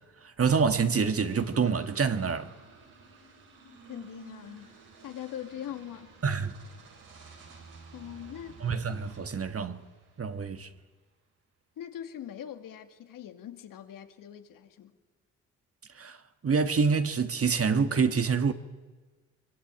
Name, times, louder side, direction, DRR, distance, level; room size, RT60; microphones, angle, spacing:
voice 1, 0.2-2.5 6.2-6.5 8.6-9.8 10.2-10.7 15.9-18.5, right 5 dB, 45° right, 1.9 m, -27 dB
sound 1, 1.2-10.7, right 5 dB, 80° right, 7.2 m, -53 dB
voice 2, 3.6-6.1 7.9-8.6 11.8-14.9, left 10 dB, 75° left, 2.4 m, -42 dB
24.0 x 23.5 x 9.0 m
supercardioid pair, 60°, 33 cm